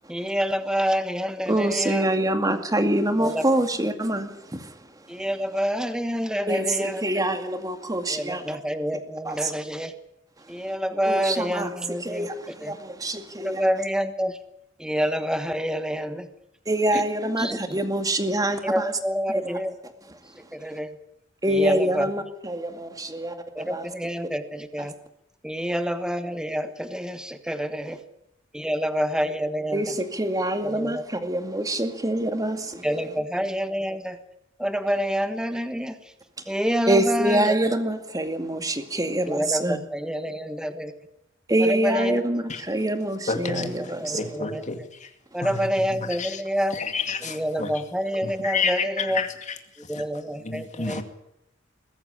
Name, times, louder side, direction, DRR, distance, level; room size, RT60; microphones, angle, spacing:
voice 1, 0.1-2.1 3.2-3.4 5.1-7.2 8.1-9.9 10.5-12.3 12.6-12.8 13.4-14.4 14.8-16.3 16.9-17.0 17.4-17.8 18.6-19.8 20.5-21.0 21.5-22.1 23.5-24.9 25.4-28.0 28.5-29.8 30.6-31.0 32.8-34.2 34.6-36.1 36.5-37.6 39.3-40.9 41.6-42.2 44.0-44.8 45.3-46.8 47.2-49.2 49.9-51.0, equal, 5° right, 10 dB, 1.3 m, -27 dB
voice 2, 1.5-4.9 6.5-8.4 9.3-9.5 11.0-11.7 12.0-13.6 16.7-18.8 19.3-19.6 21.4-23.9 29.7-32.9 36.9-39.8 41.5-44.2, right 1 dB, 20° right, 7 dB, 2.2 m, -25 dB
voice 3, 43.3-45.1 45.4-46.4 46.7-47.7 48.2-49.6 49.8-50.0 50.4-51.0, left 5 dB, 40° left, 7 dB, 2.3 m, -30 dB
22.0 x 14.5 x 9.9 m, 0.83 s
head